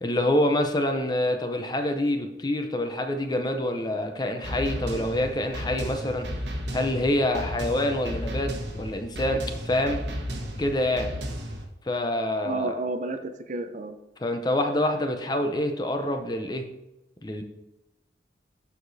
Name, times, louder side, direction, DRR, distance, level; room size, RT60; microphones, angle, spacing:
voice 1, 0.0-6.3 6.7-8.5 8.8-10.0 10.6-11.1 11.9-12.7 14.2-16.6 17.2-17.4, left 1 dB, 25° left, 6 dB, 0.6 m, -26 dB
sound 1, 4.4-11.6, equal, 75° right, 1.2 m, -34 dB
voice 2, 12.4-14.0, right 2 dB, 40° right, 8 dB, 0.5 m, -31 dB
12.0 x 4.9 x 2.7 m, 0.96 s
head